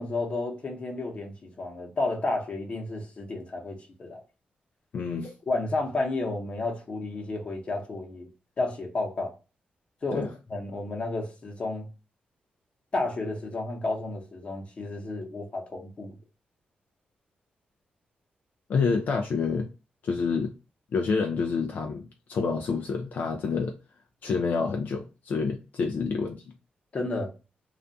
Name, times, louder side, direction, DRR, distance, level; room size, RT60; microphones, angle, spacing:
voice 1, 0.0-4.2 5.5-8.3 8.6-9.3 10.0-11.9 12.9-16.1 26.9-27.3, left 2 dB, 40° left, 0.8 m, -31 dB
voice 2, 4.9-5.3 10.1-10.3 18.7-19.7 20.0-20.5 20.9-23.7 24.2-26.4, left 5 dB, 65° left, 0.3 m, -28 dB
2.4 x 2.2 x 2.6 m
wide cardioid pair, 120°, 3 cm